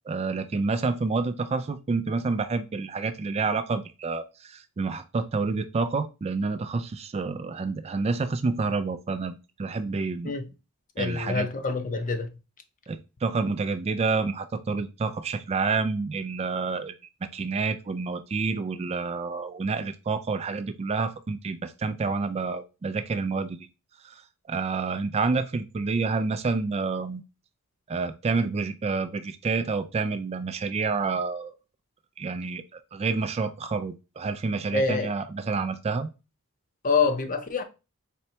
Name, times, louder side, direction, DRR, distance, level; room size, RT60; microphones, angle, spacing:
voice 1, 0.1-10.3 11.0-11.5 12.9-16.9 17.2-23.7 24.0-24.2 24.5-27.2 27.9-31.5 32.2-36.1, right 4 dB, 30° right, 0.3 m, -28 dB
voice 2, 11.0-12.3 34.7-35.1 36.8-37.6, left 4 dB, 35° left, 0.6 m, -26 dB
4.2 x 3.2 x 2.8 m
head